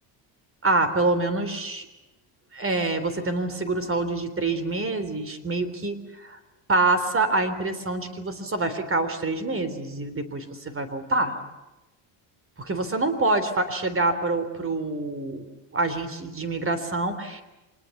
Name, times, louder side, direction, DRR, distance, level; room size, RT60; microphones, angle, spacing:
voice 1, 0.6-1.9 2.5-6.4 6.7-11.3 12.6-17.4, right 2 dB, 30° right, 11 dB, 3.5 m, -26 dB
25.5 x 20.0 x 8.4 m, 1.0 s
cardioid pair, 95°, 46 cm